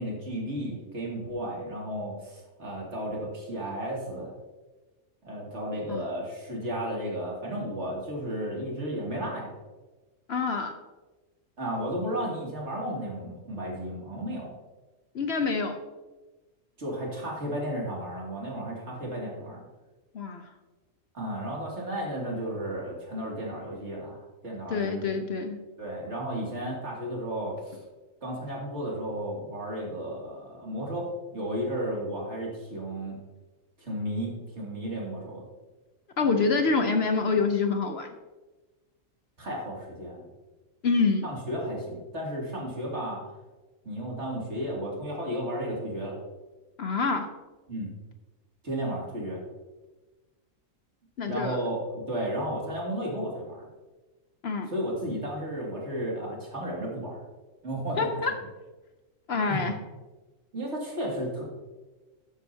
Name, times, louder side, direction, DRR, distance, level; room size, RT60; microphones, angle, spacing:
voice 1, 0.0-4.3 5.2-9.5 11.6-14.5 16.8-19.6 21.1-25.1 25.8-27.8 28.2-31.1 31.3-33.2 33.8-35.4 39.4-40.2 41.2-43.2 43.8-46.2 47.7-47.9 48.6-49.4 51.2-53.7 54.7-57.2 57.6-58.1 59.5-59.6 60.5-61.4, equal, 55° right, -3 dB, 2.7 m, -33 dB
voice 2, 10.3-10.7 15.1-15.8 20.1-20.5 24.7-25.6 36.2-38.1 40.8-41.3 46.8-47.3 51.2-51.6 54.4-54.7 58.0-58.3 59.3-59.7, left 4 dB, 55° left, 6 dB, 0.9 m, -26 dB
12.0 x 8.9 x 2.8 m, 1.2 s
omnidirectional pair, 1.4 m